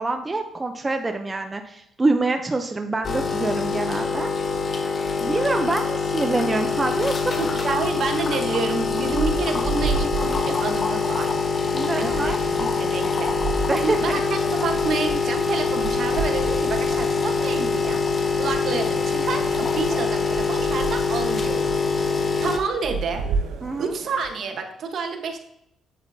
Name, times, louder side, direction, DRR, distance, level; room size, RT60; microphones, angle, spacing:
voice 1, 0.0-4.3 5.2-7.3 7.6-7.8 11.7-12.4 13.7-14.2 23.6-23.9, right 3 dB, 20° right, 5 dB, 0.6 m, -25 dB
sound 1, 3.0-22.6, left 4 dB, 40° left, 1.0 m, -24 dB
voice 2, 7.4-11.4 11.9-12.3 12.6-13.6 13.8-18.0 18.3-23.3 23.8-25.4, right 4 dB, 60° right, 5 dB, 1.2 m, -29 dB
sound 2, 8.8-24.4, right 5 dB, 90° right, 0.8 m, -33 dB
8.4 x 7.9 x 2.8 m, 0.79 s
cardioid pair, 90°, 0 cm